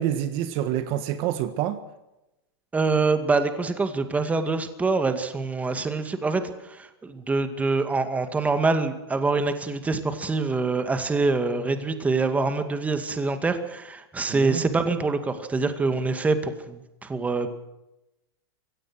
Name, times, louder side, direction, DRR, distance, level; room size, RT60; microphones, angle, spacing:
voice 1, 0.0-1.8 14.3-14.6, right 11 dB, 45° right, 1.6 m, -27 dB
voice 2, 2.7-17.5, right 3 dB, 10° right, 2.2 m, -25 dB
24.5 x 17.5 x 6.3 m
supercardioid pair, 135°, 13 cm